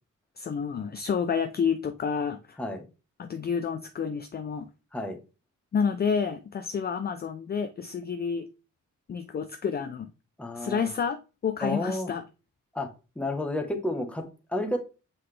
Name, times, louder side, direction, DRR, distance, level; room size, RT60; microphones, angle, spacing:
voice 1, 0.4-2.6 3.2-4.7 5.7-8.5 9.1-10.1 10.6-12.2, left 6 dB, 30° left, 0.4 m, -29 dB
voice 2, 10.4-10.9 11.6-12.1 12.7-12.9 13.2-14.8, left 1 dB, 5° left, 1.0 m, -31 dB
7.6 x 3.9 x 3.3 m
wide cardioid pair, 150°, 31 cm